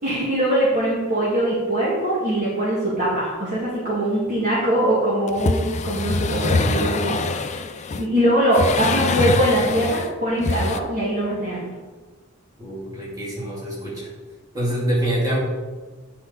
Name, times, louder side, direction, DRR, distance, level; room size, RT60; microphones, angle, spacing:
voice 1, 0.0-7.6 8.0-11.7, right 1 dB, 35° right, -8 dB, 2.0 m, -22 dB
sound 1, 5.3-8.0 8.5-10.1 10.4-10.8, left 3 dB, 30° left, 0.4 m, -24 dB
voice 2, 12.6-14.1 14.5-15.4, right 1 dB, 15° right, -7 dB, 2.8 m, -25 dB
9.7 x 5.8 x 4.0 m, 1.3 s
head